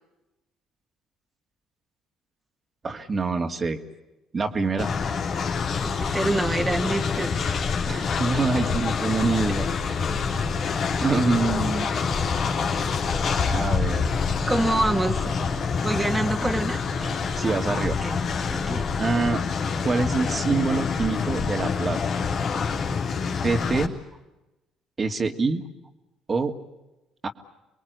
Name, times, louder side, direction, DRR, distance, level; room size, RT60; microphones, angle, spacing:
voice 1, 2.8-3.8 4.3-4.9 7.8-10.1 11.0-11.9 13.5-14.1 17.0-18.0 19.0-19.4 19.8-22.0 23.4-23.9 25.0-25.6 26.3-26.5 27.2-27.3, right 3 dB, 35° right, 5 dB, 2.5 m, -25 dB
Train, 4.8-23.9, left 5 dB, 55° left, 3.2 m, -26 dB
voice 2, 5.7-7.4 14.5-15.5 15.8-16.8 17.8-18.2 18.5-18.8, right 2 dB, 15° right, 3 dB, 2.3 m, -26 dB
28.0 x 22.0 x 8.2 m, 0.99 s
hypercardioid pair, 55°, 0 cm